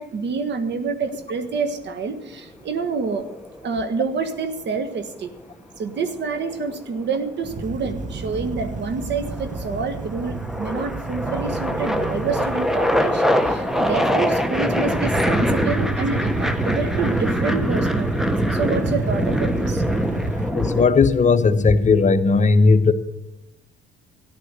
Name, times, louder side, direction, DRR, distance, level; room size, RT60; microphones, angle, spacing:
voice 1, 0.0-3.2 3.6-5.3 5.8-19.8, right 4 dB, 60° right, 9 dB, 1.5 m, -28 dB
sound 1, 3.0-4.1 6.0-7.2 8.2-8.6 9.0-20.9, equal, ahead, 1.0 m, -24 dB
sound 2, 7.4-20.5, right 4 dB, 40° right, 1.1 m, -30 dB
voice 2, 20.5-22.9, left 4 dB, 35° left, 10 dB, 1.0 m, -16 dB
14.0 x 11.0 x 6.6 m, 0.89 s
cardioid pair, 90°, 20 cm